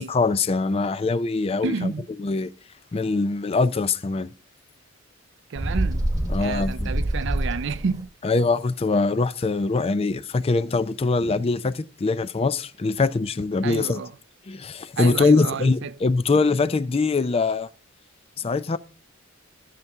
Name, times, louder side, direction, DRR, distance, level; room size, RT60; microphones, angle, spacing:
voice 1, 0.0-1.9 2.2-2.5 2.9-4.3 6.3-6.9 8.2-14.0 14.5-17.7 18.4-18.8, left 3 dB, 30° left, 0.4 m, -23 dB
voice 2, 1.6-2.1 5.5-6.1 6.4-8.1 13.6-14.2 15.0-16.0, right 5 dB, 60° right, 0.4 m, -30 dB
Bird, 5.6-8.0, right 1 dB, 15° right, 1.3 m, -26 dB
13.5 x 6.7 x 3.5 m
head